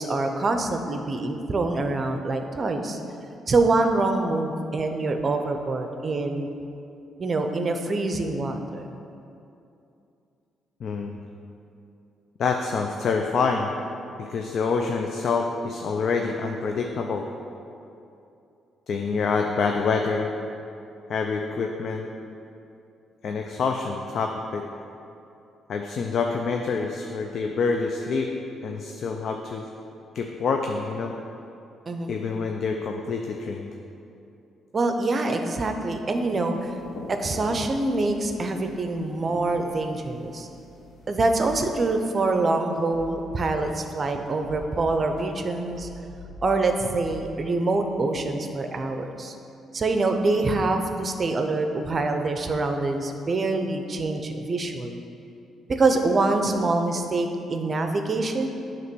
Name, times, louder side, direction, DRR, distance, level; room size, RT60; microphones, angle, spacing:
voice 1, 0.0-3.0 3.5-6.5 7.2-8.9 31.9-32.2 34.7-36.7 37.1-40.5 41.1-45.9 46.4-49.3 49.7-55.0 55.8-58.5, right 2 dB, 40° right, 5 dB, 0.6 m, -25 dB
voice 2, 10.8-11.2 12.4-13.8 14.2-17.3 18.9-20.3 21.1-22.1 23.2-24.7 25.7-28.3 28.6-29.6 30.1-31.1 32.1-33.7, left 4 dB, 60° left, 3 dB, 0.4 m, -26 dB
sound 1, 36.5-41.9, left 2 dB, 80° left, 0.8 m, -45 dB
sound 2, 41.4-41.6 42.2-42.3 42.8-43.7 44.3-45.4 45.7-46.7 47.0-47.3, left 4 dB, 40° left, 1.2 m, -43 dB
7.9 x 3.0 x 6.1 m, 2.7 s
cardioid pair, 90°, 0 cm